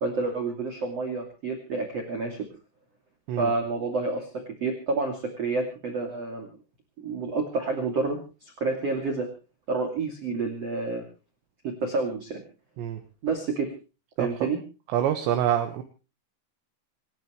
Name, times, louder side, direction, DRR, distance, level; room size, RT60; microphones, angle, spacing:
voice 1, 0.0-2.4 3.4-6.5 7.0-9.3 9.7-11.0 11.6-12.4 13.2-13.7 14.2-14.6, right 3 dB, 40° right, 3 dB, 2.9 m, -29 dB
voice 2, 14.2-14.5 14.9-15.8, right 10 dB, 70° right, 7 dB, 3.4 m, -26 dB
27.5 x 13.0 x 3.2 m, 0.34 s
omnidirectional pair, 5.7 m